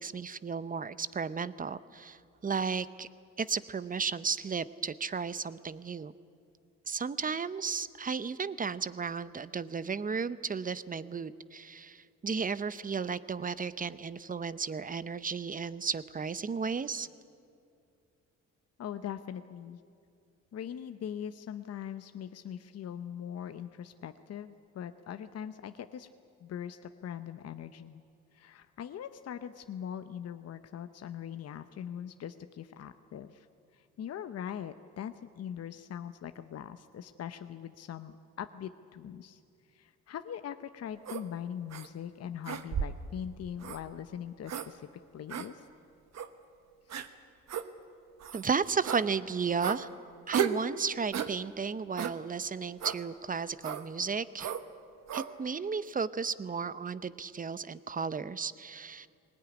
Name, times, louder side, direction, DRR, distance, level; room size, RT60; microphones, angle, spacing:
voice 1, 0.0-3.1 3.4-6.1 6.9-17.1 48.3-49.9 50.3-54.5 55.1-59.1, right 5 dB, 30° right, 15 dB, 0.8 m, -34 dB
voice 2, 18.8-19.8 20.5-26.1 26.4-28.0 28.3-33.5 33.7-39.4 39.7-44.9 45.1-45.7 46.9-47.0, left 9 dB, 55° left, 10 dB, 0.8 m, -41 dB
sound 1, 41.0-41.2 41.7-41.9 42.4-43.0 43.6-43.8 44.5-44.7 45.3-45.5 46.1-46.3 46.9-47.1 47.5-47.7 48.2-48.4 48.8-49.0 49.6-49.8 50.3-50.6 51.1-51.3 52.0-52.2 52.8-53.0 53.6-53.8 54.4-54.6 55.1-55.3, right 8 dB, 60° right, 1.3 m, -33 dB
20.5 x 19.0 x 9.9 m, 2.3 s
cardioid pair, 90°, 30 cm